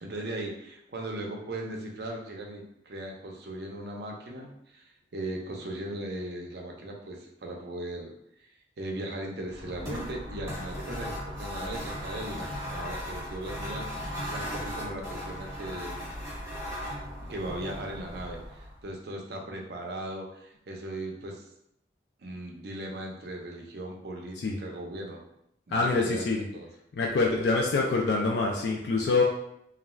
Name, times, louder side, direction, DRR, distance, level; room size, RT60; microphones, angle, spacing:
voice 1, 0.0-8.1 8.4-8.5 8.8-16.1 17.3-21.5 22.2-25.2 25.7-26.7, right 1 dB, 60° right, 0 dB, 0.5 m, -38 dB
sound 1, 9.5-18.9, equal, 20° right, 1.0 m, -37 dB
voice 2, 25.7-26.4 26.9-29.2, left 3 dB, 65° left, -1 dB, 0.3 m, -25 dB
2.4 x 2.2 x 3.1 m, 0.78 s
head